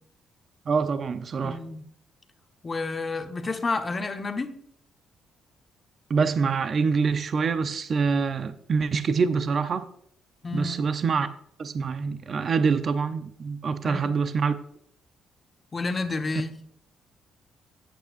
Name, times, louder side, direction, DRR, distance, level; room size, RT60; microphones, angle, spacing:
voice 1, 0.7-1.6 6.1-9.9 10.5-11.3 11.6-14.6, right 5 dB, 50° right, 0.8 m, -25 dB
voice 2, 1.4-1.9 2.6-4.6 10.4-10.8 13.8-14.1 15.7-16.6, left 3 dB, 30° left, 1.2 m, -30 dB
14.0 x 8.4 x 2.6 m
cardioid pair, 90°, 0 cm